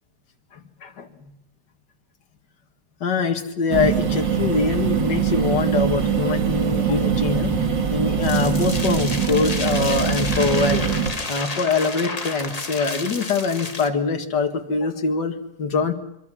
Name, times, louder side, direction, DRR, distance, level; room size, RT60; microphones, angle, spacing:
voice 1, 3.0-7.5 7.9-10.9 11.3-15.9, left 4 dB, 70° left, 5 dB, 2.5 m, -23 dB
sound 1, 3.7-11.1, right 7 dB, 80° right, 2.6 m, -22 dB
sound 2, 8.2-13.9, left 3 dB, 20° left, 1.4 m, -31 dB
25.5 x 24.0 x 6.2 m, 0.83 s
omnidirectional pair, 2.0 m